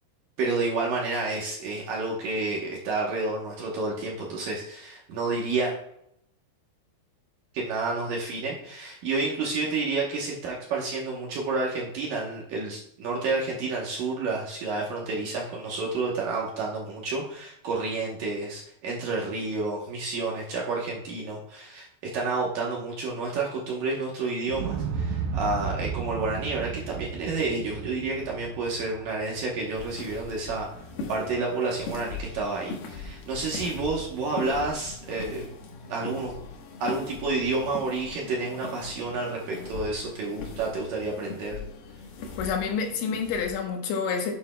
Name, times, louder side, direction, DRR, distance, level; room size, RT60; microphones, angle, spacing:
voice 1, 0.4-5.7 7.5-21.9 22.1-30.7 31.1-35.5 35.9-36.4 36.8-41.6, right 3 dB, 70° right, -3 dB, 2.2 m, -30 dB
Explosion, 24.5-30.5 30.8-30.9, right 6 dB, 85° right, 3.4 m, -34 dB
sound 1, 29.7-43.6, left 4 dB, 70° left, 3.0 m, -40 dB
voice 2, 42.4-44.3, left 6 dB, 85° left, 3 dB, 3.6 m, -28 dB
9.7 x 9.2 x 2.3 m, 0.76 s
omnidirectional pair, 5.2 m